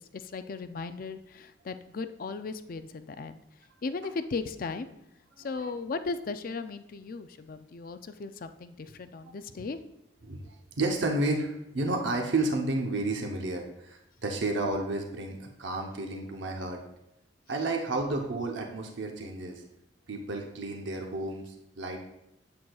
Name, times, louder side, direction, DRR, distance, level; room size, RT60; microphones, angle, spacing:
voice 1, 0.0-3.4 3.8-4.9 5.4-9.8 17.5-17.6, left 4 dB, 45° left, 10 dB, 0.4 m, -37 dB
voice 2, 5.4-5.7 9.2-9.3 10.2-16.8 17.5-19.6 20.1-22.0, right 2 dB, 70° right, 2 dB, 0.8 m, -31 dB
8.4 x 7.7 x 2.3 m, 0.86 s
head